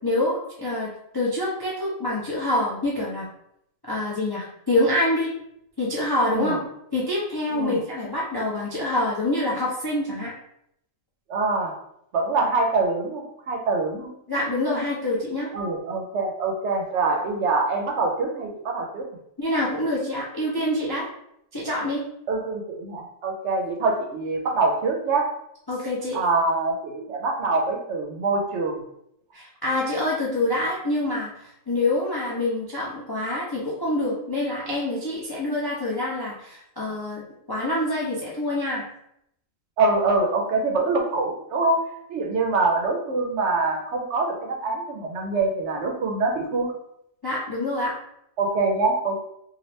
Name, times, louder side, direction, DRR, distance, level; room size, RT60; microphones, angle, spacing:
voice 1, 0.0-3.3 3.8-5.3 5.8-6.6 6.9-10.3 14.3-15.5 19.4-21.1 21.5-22.0 25.7-26.2 29.3-38.8 47.2-47.9, left 1 dB, 35° left, -5 dB, 0.3 m, -26 dB
voice 2, 11.3-11.7 12.1-14.1 15.5-19.0 22.3-25.3 26.1-28.8 39.8-41.8 42.1-46.7 48.4-49.2, right 3 dB, 65° right, 1 dB, 0.8 m, -24 dB
2.9 x 2.4 x 3.1 m, 0.75 s
omnidirectional pair, 1.4 m